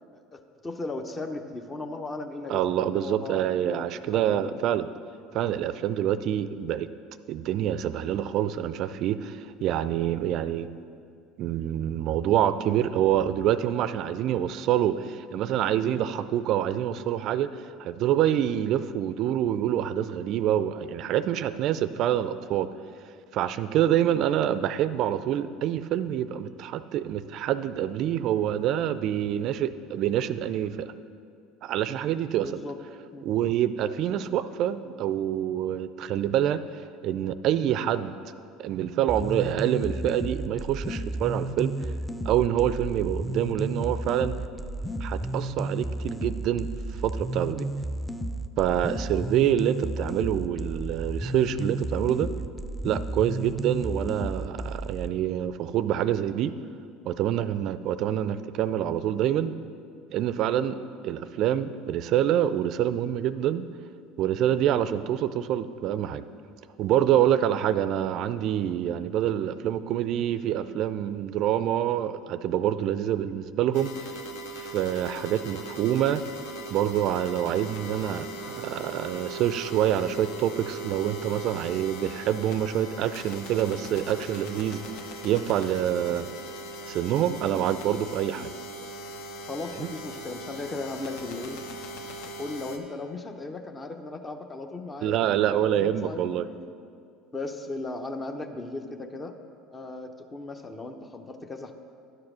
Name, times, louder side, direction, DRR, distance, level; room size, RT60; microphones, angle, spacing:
voice 1, 0.1-3.9 4.1-4.6 6.1-6.2 24.0-24.2 32.3-32.8 33.1-33.3 34.8-34.9 83.9-84.1 86.1-86.2 87.5-87.7 88.4-88.5 89.4-91.6 92.2-95.2 95.5-96.8 97.3-99.3 99.7-101.7, left 2 dB, 25° left, 5 dB, 0.7 m, -37 dB
voice 2, 2.5-4.9 5.3-6.9 7.3-10.7 11.4-17.5 17.8-22.7 23.3-30.9 31.6-32.5 33.2-38.2 38.6-41.7 42.3-44.3 45.0-46.7 47.0-47.7 48.6-52.3 52.8-56.5 57.0-59.5 60.1-60.8 61.0-63.6 64.2-66.2 66.8-73.9 74.6-76.2 76.7-84.8 85.2-86.3 86.9-88.5 89.8-89.9 95.0-96.5, right 11 dB, 55° right, 14 dB, 0.4 m, -26 dB
sound 1, 39.1-55.1, right 1 dB, 5° right, 0.5 m, -32 dB
sound 2, 73.7-92.8, right 1 dB, 70° left, 0.9 m, -39 dB
11.0 x 4.8 x 6.1 m, 2.3 s
hypercardioid pair, 70°, 0 cm